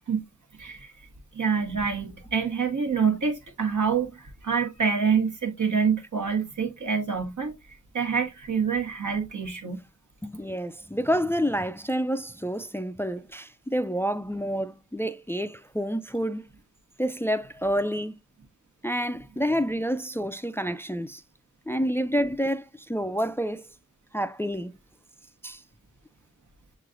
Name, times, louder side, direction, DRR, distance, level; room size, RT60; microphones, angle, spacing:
voice 1, 0.6-1.1 1.3-7.5 7.9-9.8, right 6 dB, 75° right, 1.1 m, -26 dB
voice 2, 10.2-16.5 17.0-18.2 18.8-21.2 21.7-23.7 24.1-24.7 25.4-25.6, equal, 10° left, 0.3 m, -28 dB
6.6 x 3.1 x 2.4 m
cardioid pair, 40°, 30 cm